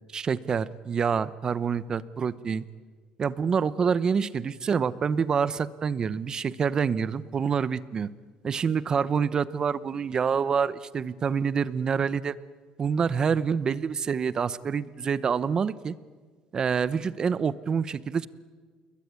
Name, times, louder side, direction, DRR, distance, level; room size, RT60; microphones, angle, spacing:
voice 1, 0.1-2.6 3.2-8.1 8.4-12.4 12.8-15.9 16.5-18.3, right 6 dB, 30° right, 17 dB, 0.9 m, -27 dB
29.0 x 21.5 x 9.6 m, 1.5 s
cardioid pair, 140°, 2 cm